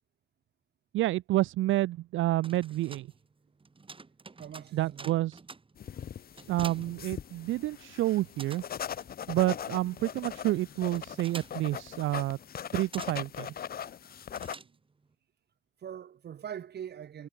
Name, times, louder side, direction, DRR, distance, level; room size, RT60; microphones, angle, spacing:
voice 1, 0.9-3.1 4.7-5.4 6.5-8.6 9.3-12.4 12.7-13.5, right 16 dB, 75° right, 0.5 m, -29 dB
sound 1, 2.2-7.8 8.0-15.1, right 4 dB, 25° right, 4.5 m, -49 dB
voice 2, 4.4-5.2 14.6-14.7 15.8-17.3, right 9 dB, 55° right, 2.0 m, -42 dB
sound 2, 5.8-14.5, left 9 dB, 50° left, 0.9 m, -41 dB
cardioid pair, 90°, 20 cm